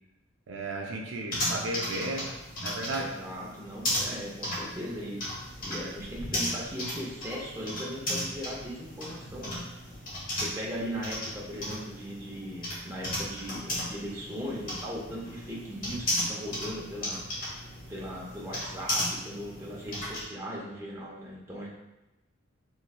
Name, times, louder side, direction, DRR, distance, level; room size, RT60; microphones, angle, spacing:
voice 1, 0.5-2.3 2.6-3.2, right 2 dB, 65° right, 0 dB, 0.4 m, -34 dB
sound 1, 1.3-20.2, left 1 dB, 45° left, 1.0 m, -35 dB
voice 2, 3.0-9.9 10.4-17.2 17.9-21.7, equal, 15° right, -5 dB, 0.6 m, -38 dB
3.2 x 3.0 x 2.3 m, 0.99 s
head